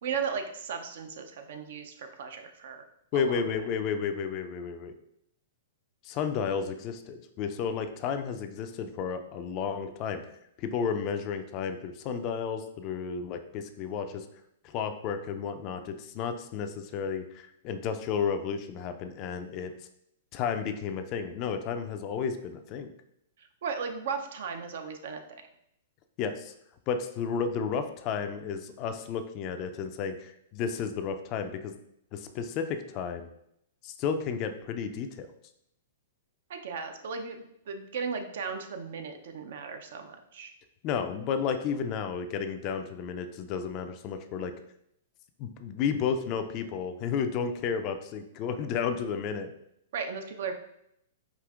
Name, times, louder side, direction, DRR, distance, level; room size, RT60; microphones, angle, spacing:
voice 1, 0.0-2.9 3.1-3.4 23.4-25.2 36.5-40.5 49.9-50.5, right 6 dB, 60° right, 6 dB, 0.5 m, -36 dB
voice 2, 3.1-4.9 6.0-10.2 10.6-14.3 14.6-19.7 20.3-22.9 26.2-26.5 26.9-31.7 32.1-33.3 33.8-35.3 40.8-44.5 45.4-49.5, left 6 dB, 40° left, 8 dB, 0.3 m, -32 dB
5.0 x 2.7 x 2.4 m, 0.76 s
figure-of-eight pair, 110°, 0 cm